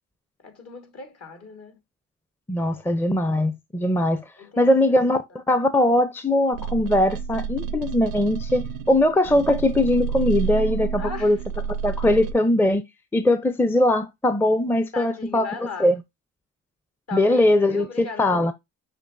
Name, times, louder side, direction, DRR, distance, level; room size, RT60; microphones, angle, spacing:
voice 1, 0.4-1.8 2.7-2.8 4.4-5.2 11.0-11.4 14.9-15.9 17.1-18.5, left 5 dB, 55° left, 1.8 m, -38 dB
voice 2, 2.5-4.2 4.6-11.4 11.8-12.8 13.1-15.5 15.8-15.9 17.1-18.5, left 1 dB, 5° left, 0.5 m, -21 dB
sound 1, 6.5-12.3, right 7 dB, 90° right, 0.5 m, -30 dB
6.5 x 3.0 x 2.5 m
cardioid pair, 90°, 30 cm